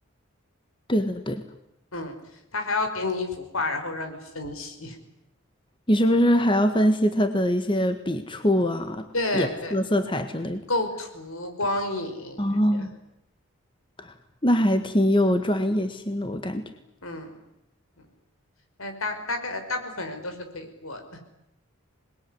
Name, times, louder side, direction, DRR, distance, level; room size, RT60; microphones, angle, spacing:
voice 1, 0.9-1.4 5.9-9.1 9.3-10.6 12.4-12.9 14.0-14.1 14.4-16.7, equal, 25° left, 7 dB, 1.7 m, -23 dB
voice 2, 2.5-5.0 9.1-9.8 10.7-12.9 17.0-17.3 18.0-18.1 18.8-21.2, left 2 dB, 80° left, 6 dB, 5.5 m, -30 dB
27.0 x 21.5 x 9.9 m, 0.83 s
head